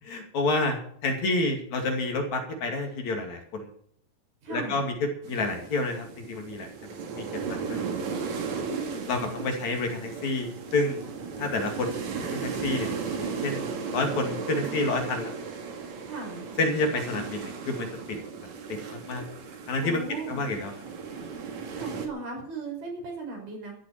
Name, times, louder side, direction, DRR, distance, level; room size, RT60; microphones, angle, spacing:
voice 1, 0.0-3.7 4.5-7.8 9.1-11.0 11.4-12.0 12.3-12.9 13.2-15.3 16.6-17.9 18.7-19.2 19.7-20.0 20.3-20.7, left 2 dB, 55° left, 3 dB, 3.6 m, -29 dB
voice 2, 4.4-4.8 8.6-9.1 16.0-16.5 19.8-20.4 21.7-23.7, right 3 dB, 90° right, -1 dB, 7.5 m, -37 dB
sound 1, 5.2-22.1, right 5 dB, 55° right, 3.0 m, -36 dB
14.5 x 8.0 x 8.9 m, 0.63 s
omnidirectional pair, 4.2 m